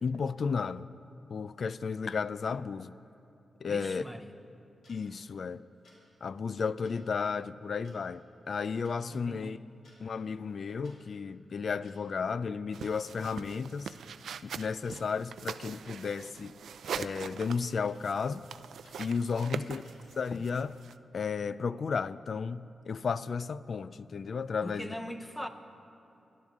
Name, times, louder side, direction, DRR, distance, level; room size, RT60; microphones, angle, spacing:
voice 1, 0.0-0.9 1.3-3.0 3.6-4.0 4.9-5.6 6.2-9.6 10.0-13.9 14.4-16.5 16.9-18.5 19.0-19.8 20.2-20.8 21.1-24.9, left 5 dB, 45° left, 0.3 m, -33 dB
voice 2, 3.7-4.3 9.1-9.7 19.4-19.8 24.6-25.5, equal, 5° left, 0.7 m, -41 dB
sound 1, 4.8-5.0 5.8-6.0 6.8-7.0 7.8-8.0 8.8-9.0 9.7-10.0 10.8-11.0 11.8-12.0 12.8-13.0 13.8-14.0 14.8-15.0 15.8-16.0 16.8-17.0 17.8-18.0 18.8-19.0 19.8-20.0, left 2 dB, 75° left, 3.8 m, -60 dB
sound 2, 12.7-20.9, right 7 dB, 75° right, 0.3 m, -43 dB
28.0 x 12.0 x 3.6 m
wide cardioid pair, 175°, 0 cm